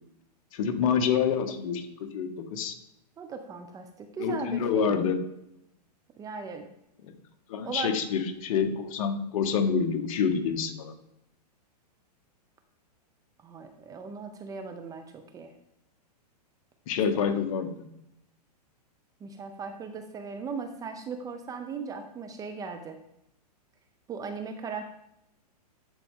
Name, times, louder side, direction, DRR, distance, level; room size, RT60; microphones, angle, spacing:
voice 1, 0.5-2.7 4.2-5.2 7.1-7.2 7.5-10.9 16.9-17.8, left 6 dB, 55° left, 8 dB, 1.0 m, -27 dB
voice 2, 3.2-5.0 6.2-6.7 7.6-7.9 13.4-15.5 19.2-23.0 24.1-24.9, right 5 dB, 15° right, 7 dB, 0.5 m, -38 dB
9.3 x 4.1 x 3.7 m, 0.80 s
hypercardioid pair, 125°, 21 cm